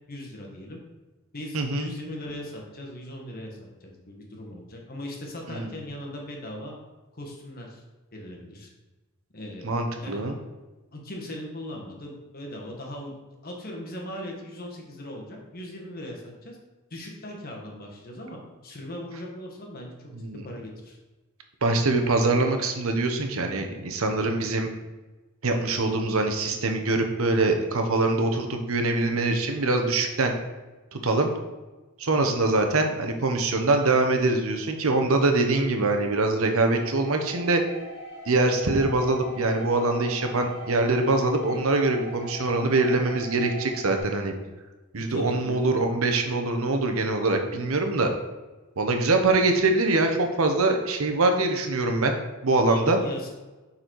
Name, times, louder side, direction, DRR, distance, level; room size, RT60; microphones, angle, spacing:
voice 1, 0.1-0.8 1.3-6.8 7.1-7.8 8.1-8.7 9.3-10.3 10.9-13.1 13.4-16.6 16.9-20.1 20.4-21.0 45.0-45.6 52.7-53.3, left 1 dB, 45° left, 0 dB, 1.3 m, -39 dB
voice 2, 1.5-1.9 5.5-5.8 9.6-10.4 20.1-20.4 21.6-24.7 25.4-30.3 30.9-31.3 32.0-37.6 38.3-44.3 44.9-48.1 48.8-52.1 52.4-53.0, right 2 dB, 70° right, 5 dB, 0.9 m, -23 dB
sound 1, 36.7-44.0, equal, 50° right, 2.2 m, -41 dB
6.6 x 4.2 x 4.6 m, 1.2 s
head